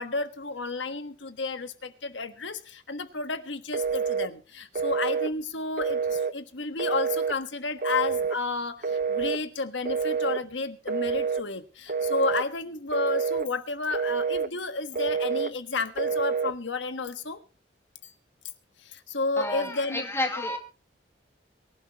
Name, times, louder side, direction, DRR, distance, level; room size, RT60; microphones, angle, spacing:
voice 1, 0.0-17.4 18.0-18.1 18.8-20.0, left 3 dB, 90° left, 9 dB, 1.4 m, -32 dB
Telephone, 3.7-4.3 4.8-5.3 5.8-6.3 6.8-7.4 7.8-8.4 8.8-9.4 9.9-10.4 10.9-11.4 11.9-12.5 12.9-13.5 13.9-14.5 15.0-15.5 16.0-16.5, right 5 dB, 45° right, 0.6 m, -27 dB
voice 2, 19.4-20.6, left 1 dB, 15° left, 3 dB, 2.1 m, -30 dB
23.5 x 11.5 x 3.0 m, 0.34 s
head